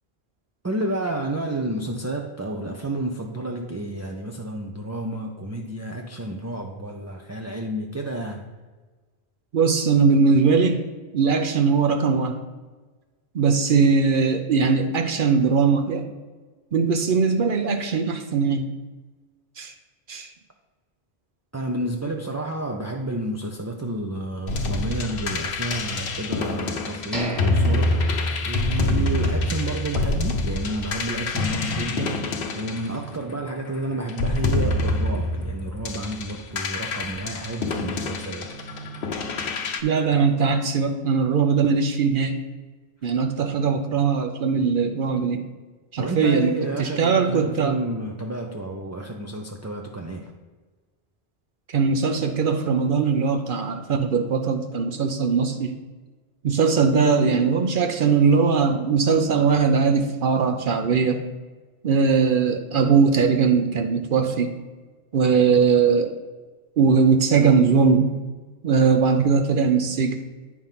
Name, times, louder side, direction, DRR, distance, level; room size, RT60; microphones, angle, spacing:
voice 1, 0.6-8.5 21.5-28.1 28.4-32.2 32.5-38.5 46.0-50.3, right 1 dB, 25° right, 1 dB, 0.3 m, -30 dB
voice 2, 9.5-10.8 11.1-12.4 13.3-16.1 16.7-18.7 19.6-19.7 20.1-20.3 39.8-42.4 43.0-45.5 45.9-46.5 46.8-47.8 51.7-55.7 56.4-61.2 61.8-64.5 65.1-66.2 66.8-68.2 68.6-70.2, right 5 dB, 60° right, 6 dB, 0.7 m, -20 dB
sound 1, 24.5-33.5 34.1-39.8, left 2 dB, 65° left, 0.9 m, -26 dB
sound 2, 27.1-29.1 29.4-29.5 30.0-30.2, equal, ahead, 1.6 m, -35 dB
9.3 x 3.6 x 5.7 m, 1.3 s
omnidirectional pair, 1.0 m